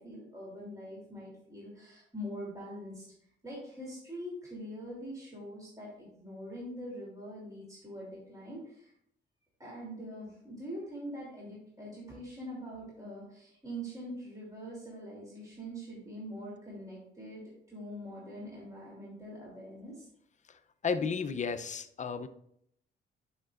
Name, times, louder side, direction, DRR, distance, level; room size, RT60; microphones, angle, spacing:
voice 1, 0.0-3.0 3.4-8.9 9.6-20.1, equal, 15° right, -5 dB, 3.0 m, -43 dB
voice 2, 20.8-22.3, left 5 dB, 40° left, 10 dB, 0.6 m, -33 dB
10.5 x 5.9 x 2.5 m, 0.72 s
cardioid pair, 90°, 20 cm